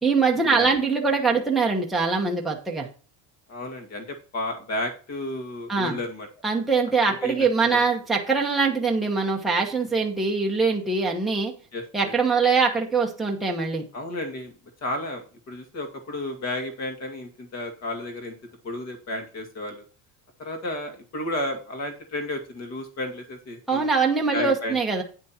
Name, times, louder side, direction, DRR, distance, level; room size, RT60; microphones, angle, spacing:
voice 1, 0.0-2.9 5.7-6.0 6.4-11.5 11.9-13.8 23.7-25.0, right 4 dB, ahead, -1 dB, 1.0 m, -23 dB
voice 2, 3.5-6.3 7.1-7.8 11.7-12.1 13.9-14.5 14.8-15.2 15.5-18.3 18.6-19.8 20.4-23.9 24.3-24.8, left 1 dB, 35° left, 4 dB, 2.2 m, -32 dB
9.3 x 6.2 x 4.3 m, 0.37 s
cardioid pair, 175°, 46 cm